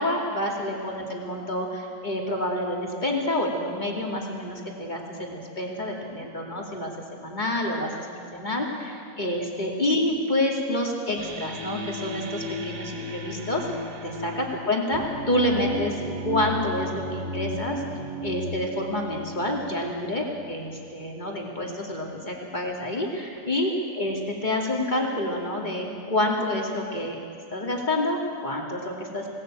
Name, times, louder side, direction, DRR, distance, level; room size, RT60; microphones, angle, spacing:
voice 1, 0.0-13.6 14.0-16.0 16.2-17.8 18.2-27.2 27.5-29.3, left 1 dB, 20° left, 0 dB, 1.3 m, -28 dB
sound 1, 11.2-20.5, equal, 70° right, 4.3 m, -35 dB
21.5 x 18.0 x 9.0 m, 2.4 s
omnidirectional pair, 5.0 m